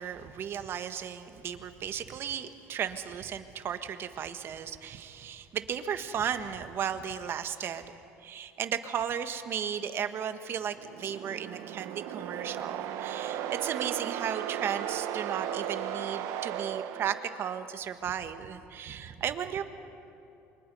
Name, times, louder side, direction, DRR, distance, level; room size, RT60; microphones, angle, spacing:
voice 1, 0.0-7.9 8.2-19.6, right 8 dB, 50° right, 9 dB, 1.4 m, -35 dB
sound 1, 10.7-17.8, right 10 dB, 70° right, 1.1 m, -36 dB
28.0 x 23.5 x 5.5 m, 2.8 s
supercardioid pair, 100°, 5 cm